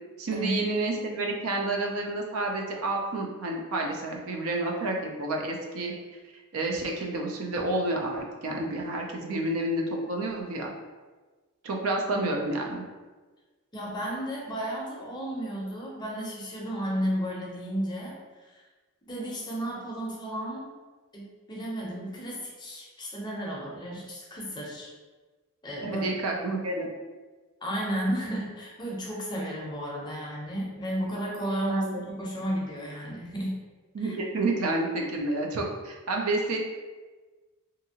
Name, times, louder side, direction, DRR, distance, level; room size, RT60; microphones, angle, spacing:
voice 1, 0.2-5.9 6.5-10.7 11.6-12.8 25.8-26.9 31.7-32.0 33.9-36.6, right 2 dB, 70° right, 1 dB, 0.4 m, -29 dB
voice 2, 13.7-18.2 18.5-18.6 19.1-20.7 21.1-24.9 25.6-26.1 27.6-33.6 34.0-34.1, equal, 20° left, -3 dB, 0.5 m, -33 dB
2.7 x 2.5 x 2.7 m, 1.3 s
head